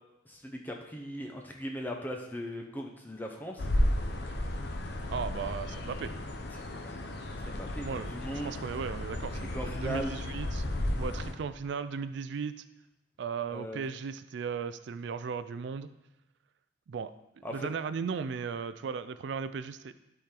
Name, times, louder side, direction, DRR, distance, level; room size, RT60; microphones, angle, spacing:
voice 1, 0.3-3.6 6.5-7.0 7.4-8.5 9.5-10.1 13.5-13.8 17.4-17.7, equal, 10° left, 1 dB, 0.7 m, -39 dB
sound 1, 3.6-11.3, left 1 dB, 60° left, 0.8 m, -33 dB
voice 2, 5.1-6.1 7.8-10.6 11.0-12.6 13.2-15.9 16.9-17.1 17.5-19.9, right 6 dB, 65° right, 13 dB, 0.3 m, -36 dB
11.5 x 4.4 x 3.7 m, 0.93 s
head